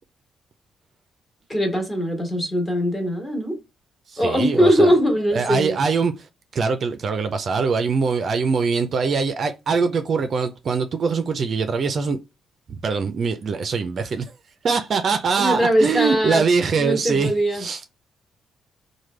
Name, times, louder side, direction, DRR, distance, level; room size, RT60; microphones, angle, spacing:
voice 1, 1.5-3.6 4.2-5.8 15.4-16.4 16.7-17.6, equal, 20° left, 1.2 m, -21 dB
voice 2, 4.1-4.9 5.3-6.3 6.5-12.2 12.7-14.3 14.6-17.9, right 5 dB, 50° right, 0.4 m, -23 dB
3.2 x 2.1 x 3.1 m
cardioid pair, 90°, 0 cm